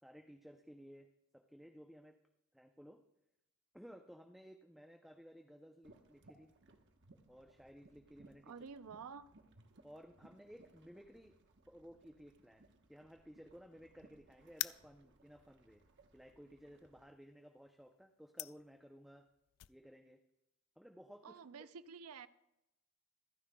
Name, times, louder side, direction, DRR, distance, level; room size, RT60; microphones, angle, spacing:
voice 1, 0.0-1.1 1.3-2.2 2.5-3.0 3.7-6.5 7.3-8.5 9.8-11.3 11.7-15.8 16.1-19.3 19.7-20.2 20.8-21.7, equal, ahead, 0.5 m, -57 dB
sound 1, 5.8-17.1, right 2 dB, 55° right, 1.1 m, -66 dB
voice 2, 8.5-9.3 21.2-22.3, right 5 dB, 80° right, 0.5 m, -50 dB
sound 2, 14.5-19.7, left 17 dB, 85° left, 0.3 m, -47 dB
26.0 x 9.8 x 2.2 m
head